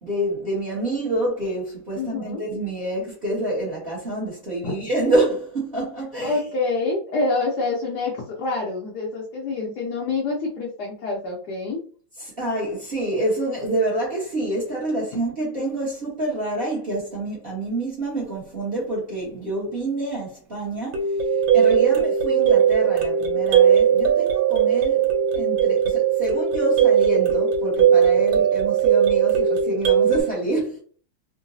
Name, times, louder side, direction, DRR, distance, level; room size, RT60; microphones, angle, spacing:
voice 1, 0.0-6.4 12.2-21.1 21.5-30.8, right 1 dB, 35° right, 1.1 m, -27 dB
voice 2, 1.9-2.4 4.6-4.7 6.2-11.8 21.9-22.0, left 3 dB, 65° left, 1.2 m, -27 dB
sound 1, 20.9-30.2, right 8 dB, 85° right, 1.4 m, -19 dB
3.8 x 2.2 x 2.6 m
omnidirectional pair, 2.0 m